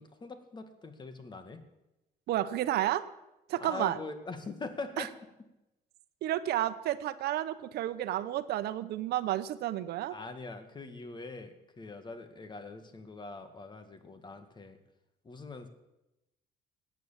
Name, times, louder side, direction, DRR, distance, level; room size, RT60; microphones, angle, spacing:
voice 1, 0.0-1.6 3.6-5.1 10.1-14.8 15.2-15.7, left 3 dB, 25° left, 9 dB, 1.9 m, -43 dB
voice 2, 2.3-3.0 3.5-4.0 5.0-5.1 6.2-10.1, right 13 dB, 75° right, 13 dB, 0.9 m, -31 dB
17.5 x 9.3 x 7.5 m, 0.94 s
cardioid pair, 110°, 17 cm